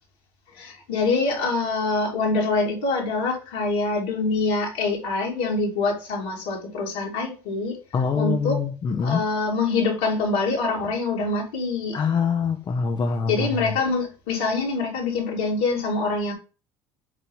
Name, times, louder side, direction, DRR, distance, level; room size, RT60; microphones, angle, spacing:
voice 1, 0.5-7.8 8.1-8.7 9.0-12.0 13.3-16.3, left 3 dB, 75° left, 3.1 m, -25 dB
voice 2, 7.9-9.2 11.9-13.5, left 5 dB, 40° left, 0.9 m, -24 dB
8.0 x 2.9 x 5.4 m
hypercardioid pair, 70°, 11 cm